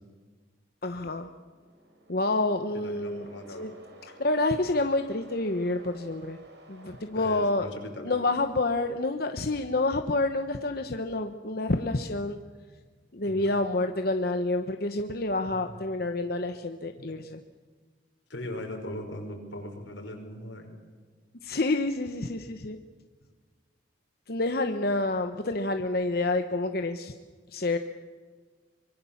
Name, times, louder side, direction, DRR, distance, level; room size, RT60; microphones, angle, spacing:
voice 1, 0.8-1.3 2.1-3.3 3.6-3.7 4.0-6.4 6.7-7.7 8.0-12.4 13.1-17.4 21.4-22.8 24.3-27.1 27.5-27.8, left 2 dB, 55° left, 6 dB, 1.1 m, -28 dB
sound 1, 1.2-8.2, right 1 dB, 70° right, 4.5 m, -53 dB
voice 2, 2.7-3.7 7.1-8.2 13.2-13.5 15.4-15.8 17.0-17.1 18.3-20.7, left 1 dB, 85° left, 3 dB, 5.4 m, -40 dB
25.0 x 23.0 x 7.2 m, 1.5 s
head